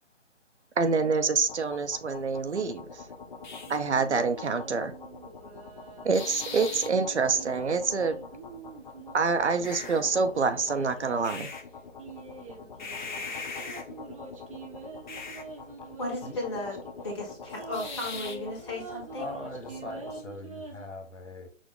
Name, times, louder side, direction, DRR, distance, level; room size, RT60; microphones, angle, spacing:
voice 1, 0.8-3.0 3.7-4.9 6.0-8.2 9.1-11.5, right 4 dB, 70° right, 9 dB, 0.7 m, -26 dB
sound 1, 1.4-20.2, left 4 dB, 40° left, 0.7 m, -42 dB
sound 2, 3.7-11.5 12.0-16.9 17.2-17.3 17.5-20.8, right 4 dB, 30° right, 0.8 m, -46 dB
voice 2, 16.0-16.8 17.0-19.3, left 1 dB, 25° left, -1 dB, 1.4 m, -35 dB
voice 3, 19.2-21.5, left 1 dB, 80° left, 5 dB, 1.4 m, -41 dB
6.2 x 2.1 x 3.6 m, 0.36 s
figure-of-eight pair, 145°, 36 cm